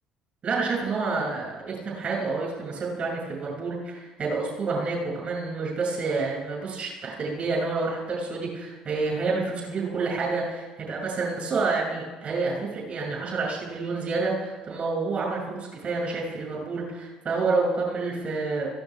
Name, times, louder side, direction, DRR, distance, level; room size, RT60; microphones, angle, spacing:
voice 1, 0.4-18.7, right 3 dB, 35° right, -3 dB, 7.1 m, -28 dB
23.0 x 16.0 x 3.7 m, 1.2 s
figure-of-eight pair, 55°, 3 cm